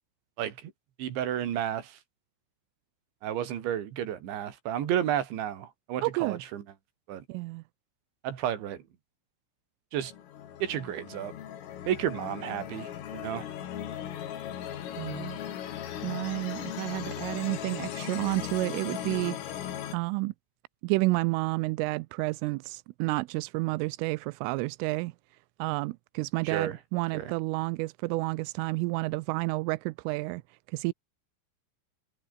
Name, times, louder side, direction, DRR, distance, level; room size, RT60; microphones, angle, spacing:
voice 1, 0.4-0.7 1.0-2.0 3.2-6.6 7.1-7.2 8.2-8.8 9.9-10.1 10.6-11.3 11.8-13.5 26.4-26.8 27.1-27.3, right 10 dB, 65° right, 4.7 m, -32 dB
voice 2, 6.0-6.4 7.3-7.6 15.0-15.4 16.0-19.4 19.9-20.3 20.8-25.1 25.6-30.4 30.7-30.9, right 23 dB, 85° right, 3.1 m, -30 dB
sound 1, 10.0-20.0, left 10 dB, 75° left, 5.4 m, -38 dB
omnidirectional pair, 6.0 m